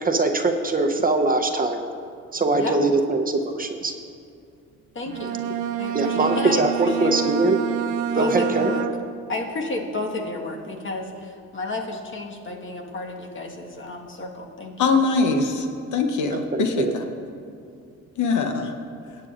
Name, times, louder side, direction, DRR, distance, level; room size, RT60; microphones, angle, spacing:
voice 1, 0.0-1.8 2.3-3.9 5.9-7.6 8.1-8.7 16.3-17.0, right 3 dB, 30° right, 5 dB, 0.7 m, -22 dB
voice 2, 4.9-5.4 5.8-7.1 8.1-8.9 9.3-14.8, left 2 dB, 40° left, 1 dB, 1.5 m, -31 dB
Bowed string instrument, 5.1-9.3, right 10 dB, 80° right, 0.6 m, -28 dB
voice 3, 14.8-15.6 15.9-17.0 18.2-18.7, left 4 dB, 75° left, 5 dB, 0.9 m, -22 dB
17.0 x 8.9 x 2.5 m, 2.4 s
cardioid pair, 90°, 30 cm